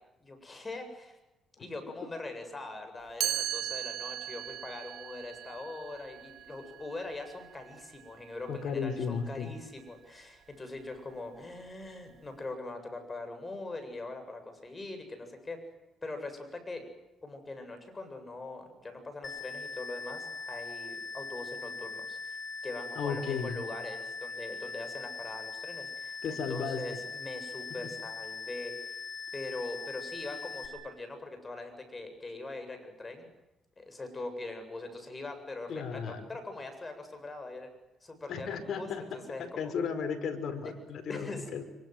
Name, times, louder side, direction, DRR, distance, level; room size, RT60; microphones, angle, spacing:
voice 1, 0.2-1.2 1.6-15.6 16.0-16.8 17.2-22.4 22.6-29.0 29.3-33.3 33.8-37.7 38.0-39.7 40.6-40.7 41.1-41.5, left 2 dB, 25° left, 7 dB, 7.9 m, -42 dB
Chime, 3.2-9.1, right 11 dB, 75° right, 1.8 m, -38 dB
voice 2, 8.5-9.5 22.9-23.6 26.2-26.8 35.7-36.3 38.3-39.0 39.4-41.6, left 6 dB, 70° left, 7 dB, 5.0 m, -34 dB
sound 1, 19.2-30.7, left 4 dB, 45° left, 5.3 m, -41 dB
26.0 x 24.0 x 8.0 m, 0.97 s
cardioid pair, 90°, 0 cm